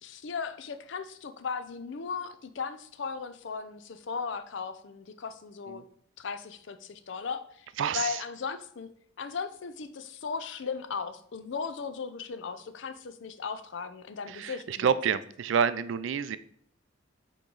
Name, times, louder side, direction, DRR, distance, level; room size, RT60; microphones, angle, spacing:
voice 1, 0.0-5.8 6.2-7.7 7.9-8.9 9.2-14.9, left 5 dB, 65° left, 10 dB, 0.5 m, -37 dB
voice 2, 7.8-8.2 14.3-16.4, right 7 dB, 70° right, 14 dB, 0.4 m, -28 dB
8.2 x 3.1 x 3.9 m, 0.62 s
head